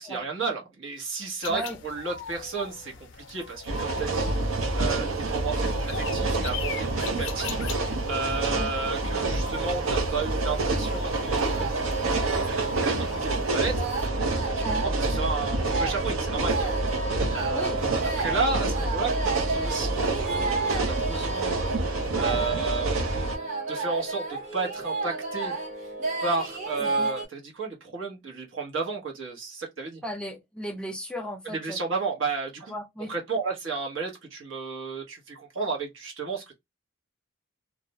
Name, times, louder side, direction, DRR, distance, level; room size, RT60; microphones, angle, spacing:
voice 1, 0.0-2.9 3.3-7.6 8.1-13.9 14.2-16.7 17.3-21.5 22.1-24.2 24.5-25.5 26.2-30.0 31.4-32.7 33.1-36.6, right 4 dB, 75° right, 1.0 m, -33 dB
sound 1, 1.4-14.1, left 6 dB, 65° left, 0.4 m, -41 dB
sound 2, 3.7-23.4, right 2 dB, 90° right, 0.6 m, -28 dB
sound 3, 10.7-27.2, right 3 dB, 35° right, 0.8 m, -32 dB
voice 2, 26.8-27.1 30.0-31.8 32.7-33.1, equal, 5° left, 0.4 m, -36 dB
2.4 x 2.1 x 2.8 m
head